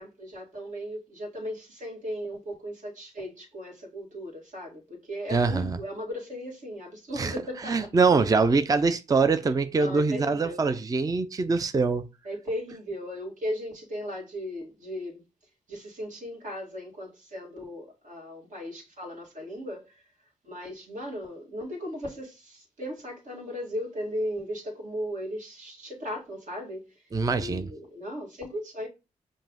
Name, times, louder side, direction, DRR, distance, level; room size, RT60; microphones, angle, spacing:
voice 1, 0.0-7.9 9.8-10.6 12.2-15.2 15.7-20.0 20.4-26.9 27.3-28.9, equal, 60° right, 1.8 m, -37 dB
voice 2, 5.3-5.8 7.2-7.3 7.7-12.0 27.1-27.7, right 4 dB, 25° right, 0.4 m, -24 dB
5.4 x 2.6 x 3.6 m
cardioid pair, 60°, 14 cm